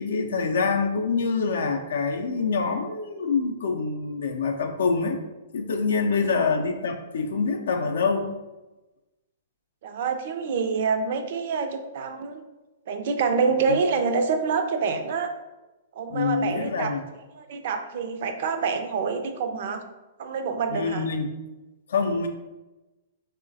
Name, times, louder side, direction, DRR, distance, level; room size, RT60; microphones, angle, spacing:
voice 1, 0.0-5.2 5.5-8.3 13.7-13.8 16.1-17.0 20.7-21.3 21.9-22.3, left 4 dB, 70° left, 4 dB, 0.4 m, -25 dB
voice 2, 9.8-12.4 12.9-15.3 16.0-17.0 17.3-19.8 20.2-21.1, right 5 dB, 60° right, 7 dB, 0.4 m, -27 dB
3.8 x 2.0 x 2.6 m, 1.1 s
hypercardioid pair, 120°, 0 cm